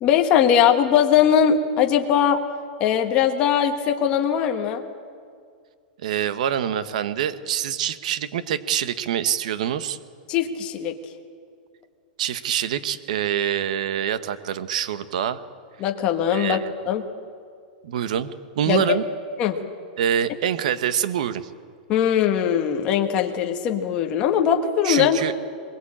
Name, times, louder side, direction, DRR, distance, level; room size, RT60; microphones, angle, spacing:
voice 1, 0.0-2.4 2.8-4.8 10.3-10.9 15.8-16.6 16.9-17.0 18.7-19.0 19.4-19.6 21.9-25.2, left 9 dB, 20° left, 4 dB, 1.4 m, -20 dB
voice 2, 6.0-10.0 12.2-15.4 16.3-16.7 17.8-18.3 18.6-19.0 20.0-21.5 24.8-25.3, right 9 dB, 55° right, 14 dB, 1.2 m, -25 dB
22.5 x 22.0 x 8.7 m, 2.1 s
supercardioid pair, 180°, 5 cm